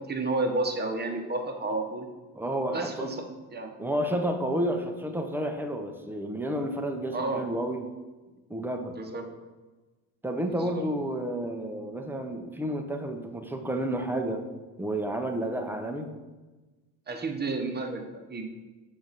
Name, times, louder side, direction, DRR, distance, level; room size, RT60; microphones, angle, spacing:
voice 1, 0.1-2.1 2.7-3.7 7.1-7.4 8.9-9.2 10.6-10.8 17.1-18.0 18.3-18.5, right 2 dB, 20° right, 3 dB, 1.1 m, -31 dB
voice 2, 2.3-3.2 3.8-7.8 8.5-9.0 10.2-14.4 14.8-16.1, right 1 dB, 5° right, 4 dB, 0.8 m, -31 dB
7.1 x 4.0 x 4.0 m, 1.2 s
hypercardioid pair, 65°, 48 cm